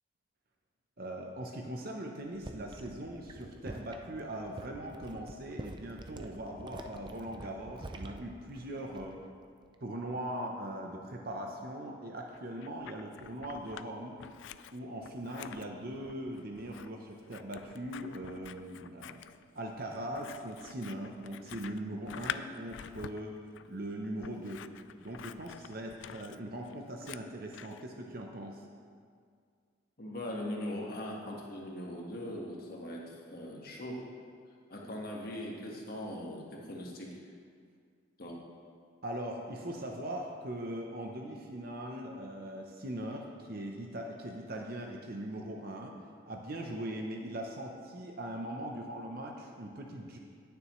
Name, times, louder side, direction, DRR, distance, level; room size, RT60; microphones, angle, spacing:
voice 1, 1.0-9.1 9.8-14.2 14.7-19.2 19.5-23.4 23.7-24.7 25.0-28.6 39.0-45.9 46.3-50.2, right 1 dB, 50° right, 1 dB, 0.8 m, -40 dB
sound 1, 2.3-9.3 9.6-10.0, right 2 dB, 25° right, 0.4 m, -47 dB
Scissors, 12.3-13.9 14.2-27.8, left 9 dB, 65° left, 0.3 m, -47 dB
voice 2, 30.0-34.0 34.7-37.2 38.2-38.4, left 1 dB, 50° left, -2 dB, 1.5 m, -40 dB
18.0 x 6.9 x 3.2 m, 2.1 s
head